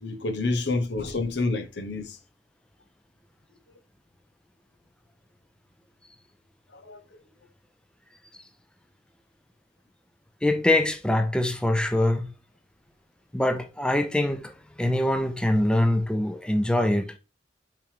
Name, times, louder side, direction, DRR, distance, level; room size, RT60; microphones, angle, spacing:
voice 1, 0.0-2.2 6.9-7.0, left 3 dB, 70° left, 1.0 m, -28 dB
voice 2, 10.4-12.3 13.3-17.2, left 1 dB, 5° left, 0.6 m, -24 dB
5.8 x 5.1 x 3.4 m
head